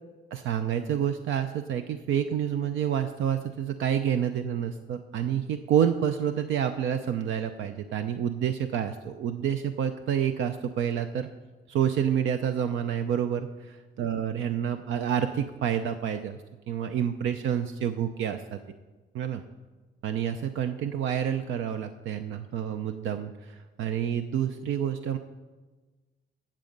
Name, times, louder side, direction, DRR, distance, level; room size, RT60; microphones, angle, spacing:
voice 1, 0.3-11.3 11.7-13.5 14.0-16.4 16.7-18.6 19.1-19.4 20.0-25.2, right 9 dB, 80° right, 8 dB, 0.6 m, -28 dB
15.0 x 7.4 x 5.3 m, 1.3 s
cardioid pair, 90°, 20 cm